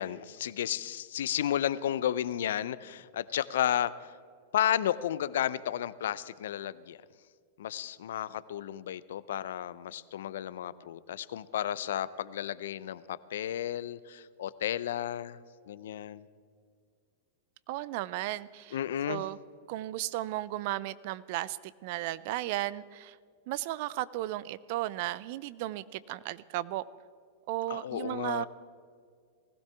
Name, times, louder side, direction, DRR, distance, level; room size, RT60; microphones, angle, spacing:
voice 1, 0.0-4.1 4.5-7.0 7.6-15.4 15.7-16.3 18.7-19.2 27.7-28.5, left 11 dB, 70° left, 18 dB, 0.5 m, -33 dB
voice 2, 17.7-18.8 19.1-19.4 19.7-23.2 23.5-26.8 27.5-28.5, right 15 dB, 55° right, 18 dB, 0.5 m, -35 dB
20.0 x 15.5 x 3.5 m, 2.2 s
hypercardioid pair, 105°, 0 cm